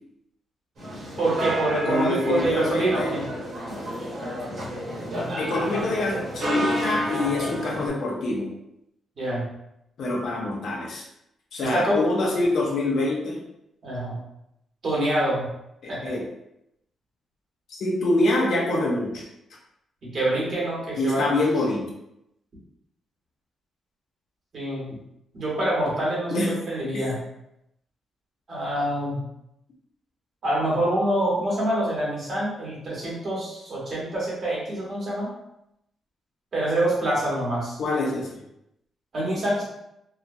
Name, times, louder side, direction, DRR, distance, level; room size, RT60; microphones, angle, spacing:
sound 1, 0.8-7.9, equal, 60° right, 1.2 m, -30 dB
voice 1, 1.2-3.2 9.2-9.4 11.7-12.0 13.8-14.1 14.8-15.5 15.9-16.0 20.0-21.2 24.5-24.9 25.3-27.2 28.5-29.2 30.4-35.3 36.5-37.8 39.1-39.6, right 1 dB, 45° right, -6 dB, 1.2 m, -26 dB
voice 2, 1.8-3.1 5.4-8.5 10.0-11.0 11.5-13.4 15.8-16.2 17.7-19.2 21.0-21.8 26.3-26.5 26.9-27.1 37.8-38.3, left 2 dB, 65° left, -2 dB, 0.6 m, -25 dB
2.8 x 2.3 x 2.6 m, 0.82 s
cardioid pair, 145°, 0 cm